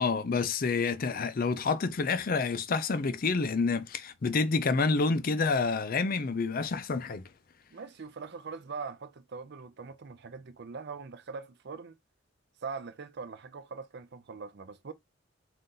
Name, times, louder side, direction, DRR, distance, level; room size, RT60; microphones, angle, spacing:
voice 1, 0.0-7.2, left 4 dB, 45° left, 0.4 m, -28 dB
voice 2, 7.7-12.0 12.6-14.9, right 5 dB, 55° right, 0.5 m, -42 dB
4.0 x 2.5 x 3.8 m
head